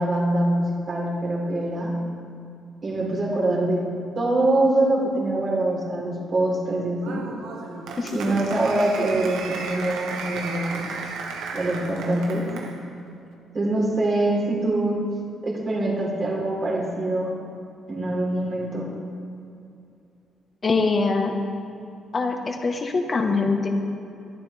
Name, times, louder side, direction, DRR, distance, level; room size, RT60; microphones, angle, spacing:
voice 1, 0.0-2.1 2.8-7.3 8.1-11.0 11.5-12.5 13.5-15.0 15.4-17.4 17.9-18.9, right 1 dB, 35° right, -3 dB, 4.2 m, -24 dB
Applause, 7.0-12.8, right 4 dB, 90° right, 1.6 m, -34 dB
voice 2, 20.6-21.4 22.1-23.7, left 4 dB, 30° left, 3 dB, 1.6 m, -23 dB
22.5 x 12.0 x 3.6 m, 2.6 s
cardioid pair, 135°, 0 cm